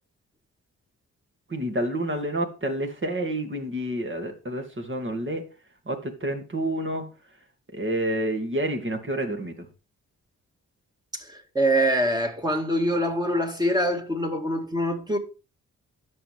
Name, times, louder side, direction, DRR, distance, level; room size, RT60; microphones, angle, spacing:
voice 1, 1.5-5.4 5.9-7.0 7.7-9.7, right 1 dB, 35° right, 2.6 m, -29 dB
voice 2, 11.1-15.2, equal, 10° right, 2.2 m, -24 dB
11.0 x 6.4 x 3.5 m
supercardioid pair, 50°, 33 cm